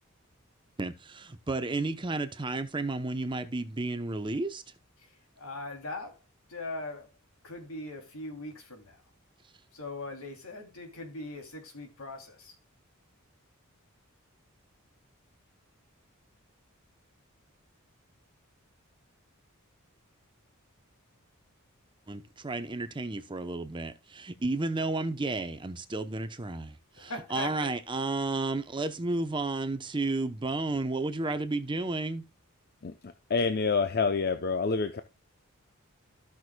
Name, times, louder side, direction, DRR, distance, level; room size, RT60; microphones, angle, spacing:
voice 1, 0.8-4.6 22.1-32.2, right 2 dB, 20° right, 0.7 m, -32 dB
voice 2, 5.0-6.2 6.5-7.1 7.4-9.0 9.7-12.6 27.0-27.7, left 2 dB, 80° left, 2.8 m, -40 dB
voice 3, 33.3-35.0, left 4 dB, 45° left, 0.6 m, -27 dB
15.0 x 6.2 x 2.2 m
head